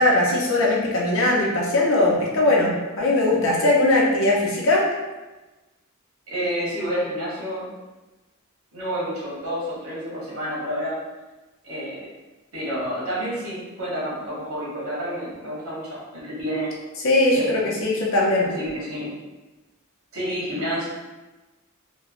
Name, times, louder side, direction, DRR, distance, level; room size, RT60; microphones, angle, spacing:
voice 1, 0.0-4.8 17.0-18.5, left 2 dB, 65° left, -3 dB, 0.5 m, -20 dB
voice 2, 6.3-7.7 8.7-11.0 11.6-12.1 12.5-16.7 17.3-17.7 18.4-19.1 20.1-20.8, equal, 90° right, -7 dB, 1.1 m, -29 dB
2.9 x 2.1 x 2.4 m, 1.1 s
head